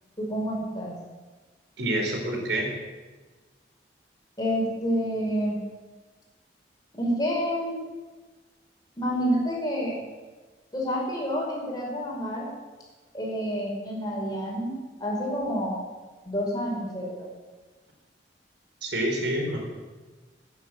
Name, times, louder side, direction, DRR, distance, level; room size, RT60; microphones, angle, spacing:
voice 1, 0.2-1.0 4.4-5.6 7.0-7.8 9.0-10.0 10.7-12.5 13.1-15.8 16.3-17.3, equal, 20° left, -3 dB, 5.3 m, -28 dB
voice 2, 1.8-2.7 18.8-19.6, right 1 dB, 85° right, 0 dB, 4.4 m, -27 dB
15.0 x 9.7 x 8.8 m, 1.3 s
head